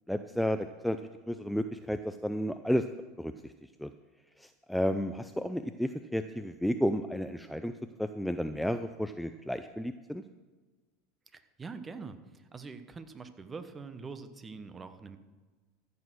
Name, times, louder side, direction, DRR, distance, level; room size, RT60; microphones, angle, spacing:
voice 1, 0.1-1.0 1.3-2.9 3.2-3.5 3.8-3.9 4.4-7.7 8.0-10.2, equal, ahead, 9 dB, 0.5 m, -32 dB
voice 2, 11.3-15.2, right 4 dB, 25° right, 10 dB, 1.1 m, -44 dB
14.0 x 6.2 x 6.2 m, 1.3 s
hypercardioid pair, 95°, 0 cm